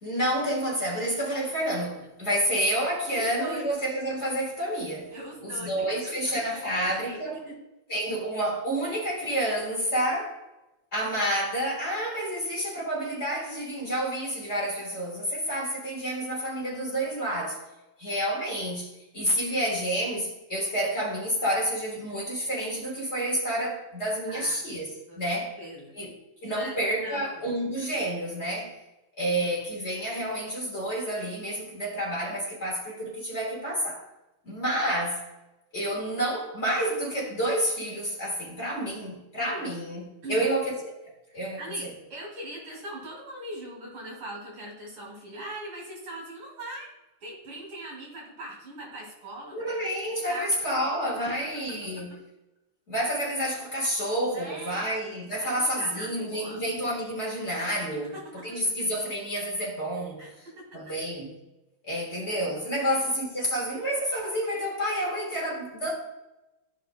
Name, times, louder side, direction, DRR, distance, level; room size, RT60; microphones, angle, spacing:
voice 1, 0.0-5.1 5.4-7.4 7.9-10.4 10.9-17.6 18.0-25.5 26.0-26.1 26.4-28.8 29.2-34.0 34.5-35.2 35.7-41.9 49.5-52.2 52.9-60.5 60.7-61.3 61.8-65.9, right 1 dB, 35° left, -3 dB, 1.7 m, -29 dB
voice 2, 3.1-3.6 5.1-7.2 7.5-7.6 24.3-24.6 25.1-25.9 26.5-27.5 29.3-29.4 39.6-39.7 40.2-40.5 41.3-46.9 47.2-49.6 50.3-50.5 51.2-51.8 54.3-54.9 55.4-56.6 58.0-58.6 60.2-60.8 62.8-63.0, right 1 dB, 75° right, -1 dB, 3.4 m, -41 dB
13.5 x 5.1 x 2.2 m, 0.99 s
omnidirectional pair, 2.3 m